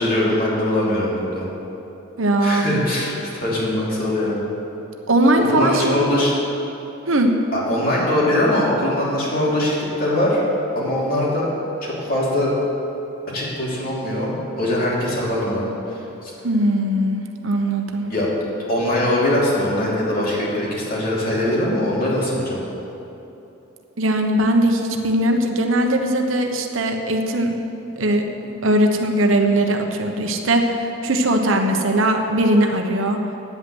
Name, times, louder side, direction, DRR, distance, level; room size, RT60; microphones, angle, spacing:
voice 1, 0.0-1.5 2.4-4.4 5.5-6.3 7.5-10.4 10.7-11.5 11.8-12.5 13.3-16.3 18.1-18.3 18.7-22.6, left 1 dB, 45° left, -5 dB, 2.8 m, -22 dB
voice 2, 2.2-2.8 5.1-6.1 7.1-7.3 16.4-18.1 24.0-27.6 28.0-33.2, right 1 dB, 70° right, 4 dB, 1.0 m, -20 dB
9.6 x 8.3 x 7.9 m, 3.0 s
head